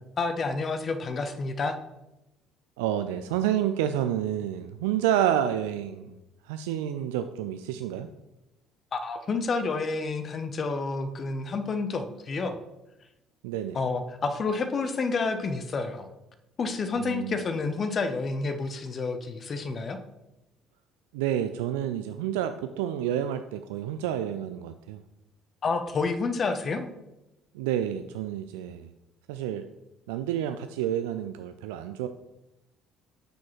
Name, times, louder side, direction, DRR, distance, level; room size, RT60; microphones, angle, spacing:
voice 1, 0.2-1.8 8.9-12.6 13.7-16.1 16.6-20.0 25.6-26.9, left 4 dB, 40° left, 9 dB, 0.8 m, -29 dB
voice 2, 2.8-6.1 6.4-8.1 13.4-13.8 17.0-17.4 21.1-25.0 27.5-28.9 29.3-29.7 30.1-32.1, right 10 dB, 70° right, 9 dB, 0.3 m, -29 dB
8.4 x 6.1 x 3.1 m, 0.94 s
figure-of-eight pair, 55°, 0 cm